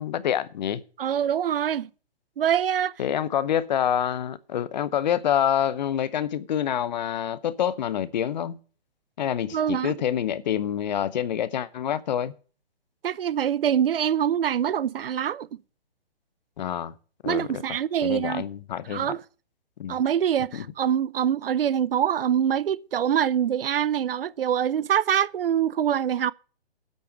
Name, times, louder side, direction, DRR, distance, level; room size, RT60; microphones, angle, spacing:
voice 1, 0.0-0.8 3.0-8.6 9.2-12.3 16.6-16.9 17.2-19.1 19.8-20.0 20.5-20.7, left 9 dB, 45° left, 0.8 m, -27 dB
voice 2, 1.0-1.9 2.4-2.9 9.5-10.0 13.0-15.6 17.3-18.4 18.9-19.2 19.9-26.3, right 9 dB, 60° right, 0.6 m, -24 dB
8.3 x 8.1 x 7.3 m
hypercardioid pair, 145°, 32 cm